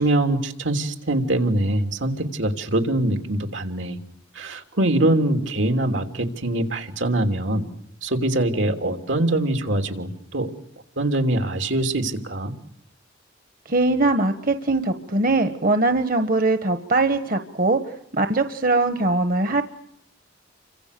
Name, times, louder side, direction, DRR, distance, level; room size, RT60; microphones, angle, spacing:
voice 1, 0.0-4.0 4.3-7.7 8.0-10.5 11.0-12.5, right 1 dB, 85° right, 5 dB, 3.2 m, -23 dB
voice 2, 13.7-17.8 18.1-19.6, right 2 dB, 50° right, 9 dB, 1.4 m, -21 dB
29.5 x 25.5 x 6.8 m, 0.71 s
head